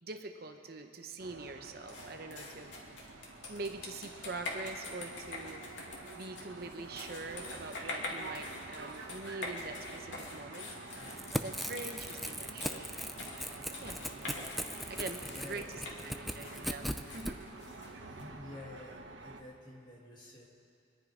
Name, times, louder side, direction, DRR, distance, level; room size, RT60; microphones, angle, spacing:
voice 1, 0.0-2.7 3.5-5.6 6.1-10.7 11.4-12.9 13.7-14.0 14.9-15.7 16.0-17.4, right 3 dB, 55° right, 6 dB, 0.8 m, -44 dB
sound 1, 1.2-19.4, right 3 dB, 80° right, 1.1 m, -49 dB
sound 2, 1.9-18.2, left 2 dB, 75° left, 2.4 m, -45 dB
Crackle / Tearing, 11.0-17.3, equal, ahead, 0.4 m, -39 dB
voice 2, 15.2-15.8 18.1-20.5, left 1 dB, 25° left, -4 dB, 2.4 m, -49 dB
25.0 x 10.5 x 5.0 m, 2.6 s
head